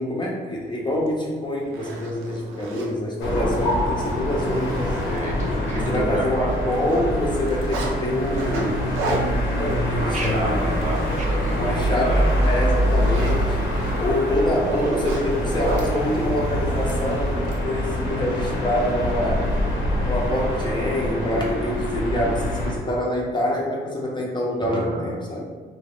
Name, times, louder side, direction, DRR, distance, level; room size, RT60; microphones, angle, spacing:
voice 1, 0.0-4.9 5.8-8.9 9.4-10.9 11.5-13.7 14.0-19.5 20.0-25.5, left 1 dB, 25° left, -3 dB, 0.5 m, -26 dB
Zipper (clothing), 1.1-1.2 1.6-2.9 3.5-3.6 4.0-4.1 4.5-4.6 4.9-6.3 6.5-7.9 8.3-11.3 11.6-11.9 12.3-15.9 16.9-17.6, right 2 dB, 85° right, 0.5 m, -32 dB
sound 1, 3.2-22.7, equal, 80° left, 0.8 m, -25 dB
voice 2, 5.0-7.0 9.7-12.3 24.6-25.2, equal, 35° right, -3 dB, 0.7 m, -30 dB
2.4 x 2.3 x 3.2 m, 1.5 s
cardioid pair, 90°, 20 cm